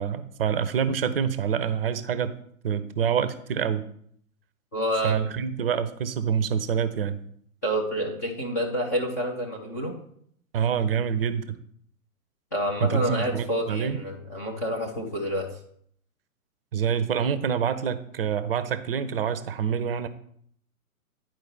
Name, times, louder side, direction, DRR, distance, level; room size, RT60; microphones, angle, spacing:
voice 1, 0.0-2.4 2.6-3.8 5.0-7.2 10.5-11.4 12.8-14.0 16.7-20.1, right 7 dB, 40° right, 12 dB, 0.6 m, -26 dB
voice 2, 4.7-5.2 7.6-10.0 12.5-15.5, equal, 15° left, -2 dB, 0.4 m, -28 dB
10.0 x 4.6 x 4.6 m, 0.65 s
figure-of-eight pair, 120°, 43 cm